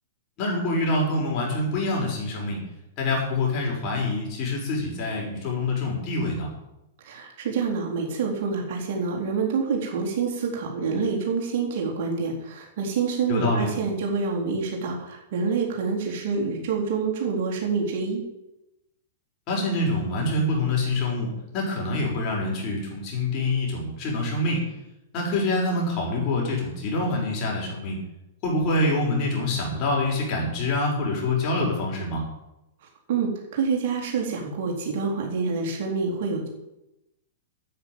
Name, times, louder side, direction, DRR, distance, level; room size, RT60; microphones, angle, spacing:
voice 1, 0.4-2.6 3.0-6.5 13.3-13.7 19.5-24.6 25.1-28.0 28.4-32.2, left 2 dB, 35° left, -2 dB, 6.5 m, -26 dB
voice 2, 7.0-18.2 33.1-36.5, right 5 dB, 50° right, -1 dB, 4.0 m, -27 dB
10.0 x 8.9 x 9.2 m, 0.92 s
figure-of-eight pair, 105°, 0 cm